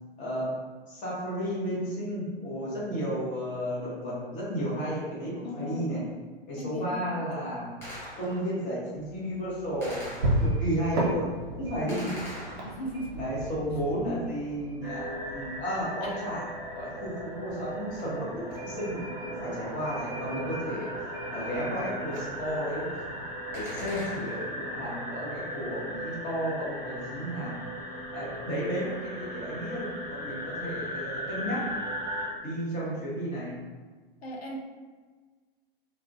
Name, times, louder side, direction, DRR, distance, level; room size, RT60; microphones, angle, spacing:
voice 1, 0.2-0.5 0.9-6.0 6.5-7.7 8.2-10.0 10.4-12.2 13.2-16.4 16.7-20.9 21.3-23.0 23.5-27.5 28.1-31.6 32.4-33.5, equal, 25° left, -6 dB, 0.8 m, -33 dB
voice 2, 5.4-6.0 6.6-7.2 11.9-12.2 12.6-13.2 16.0-16.2 34.2-34.6, left 1 dB, 85° left, 0 dB, 0.5 m, -38 dB
Gunshot gunfire, 7.8-8.6 9.8-10.8 11.9-13.2 23.5-24.6, equal, 10° left, 0.4 m, -42 dB
sound 1, 8.9-23.3, right 1 dB, 50° right, 0.6 m, -36 dB
sound 2, 14.8-32.3, equal, 15° right, 1.1 m, -37 dB
2.3 x 2.1 x 2.5 m, 1.4 s
figure-of-eight pair, 105°, 30 cm